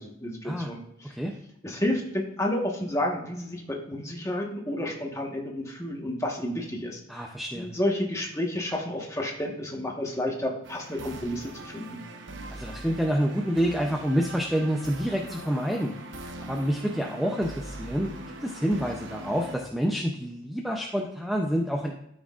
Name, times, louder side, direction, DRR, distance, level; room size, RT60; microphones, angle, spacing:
voice 1, 0.0-1.1 1.6-7.2 7.5-12.0, left 1 dB, 15° left, -1 dB, 1.3 m, -31 dB
voice 2, 7.1-7.7 12.5-16.0 16.4-18.1 18.4-21.9, equal, ahead, 1 dB, 0.5 m, -28 dB
sound 1, 10.6-19.6, right 1 dB, 75° right, 0.9 m, -41 dB
13.0 x 6.3 x 2.5 m, 0.80 s
head